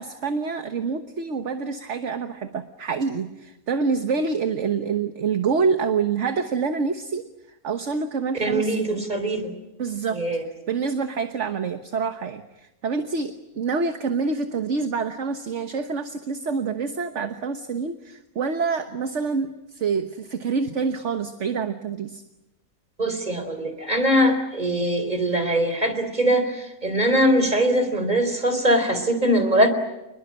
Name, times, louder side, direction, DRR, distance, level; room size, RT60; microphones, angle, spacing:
voice 1, 0.0-7.2 7.6-9.0 9.8-10.2 10.7-22.2, right 5 dB, 55° right, 7 dB, 1.5 m, -26 dB
voice 2, 8.4-9.5 10.1-10.4 23.0-29.7, equal, 30° right, 9 dB, 4.0 m, -22 dB
28.5 x 21.0 x 8.7 m, 0.95 s
omnidirectional pair, 1.6 m